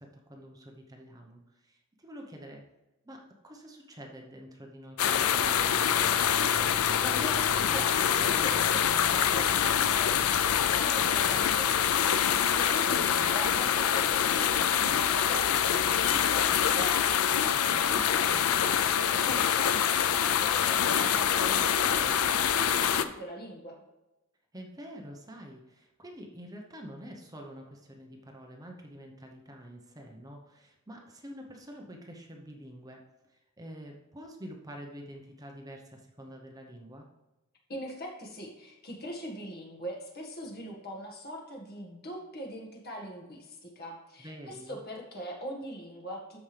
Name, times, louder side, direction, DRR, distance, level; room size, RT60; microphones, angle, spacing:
voice 1, 0.0-2.6 3.0-6.1 17.7-18.0 24.5-33.0 33.3-37.1 44.2-44.8, equal, 15° right, 1 dB, 0.9 m, -47 dB
sound 1, 5.0-23.1, left 8 dB, 85° left, 0.5 m, -25 dB
voice 2, 6.7-23.8 37.7-46.4, equal, 45° left, 0 dB, 1.8 m, -42 dB
13.0 x 5.3 x 3.4 m, 1.0 s
head